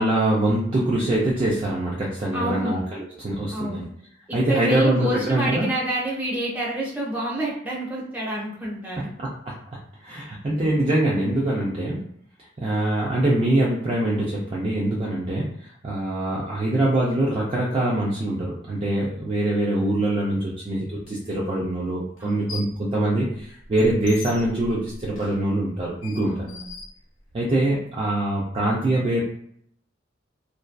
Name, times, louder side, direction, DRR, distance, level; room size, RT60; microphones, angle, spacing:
voice 1, 0.0-3.9 4.3-5.7 9.2-9.5 10.0-12.1 12.6-15.5 15.8-26.5 27.3-29.2, right 1 dB, 30° right, -5 dB, 0.4 m, -24 dB
voice 2, 2.3-2.8 3.5-3.9 4.5-9.1 22.2-22.6 26.3-26.7, right 1 dB, 10° right, -5 dB, 0.8 m, -28 dB
sound 1, 21.0-21.1 22.2-22.8 23.2-27.6, left 3 dB, 85° left, 0.6 m, -41 dB
2.6 x 2.3 x 2.2 m, 0.68 s
head